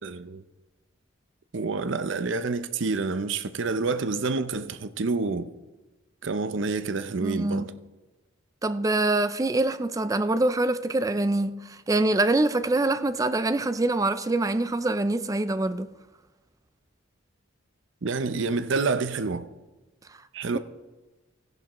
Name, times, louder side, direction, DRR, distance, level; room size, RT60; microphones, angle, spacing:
voice 1, 0.0-0.4 1.5-5.5 6.2-7.7 18.0-19.5 20.3-20.6, right 4 dB, 65° right, 0.6 m, -28 dB
voice 2, 7.2-7.7 8.6-15.9, right 2 dB, 15° right, 0.4 m, -25 dB
14.5 x 10.5 x 3.1 m
head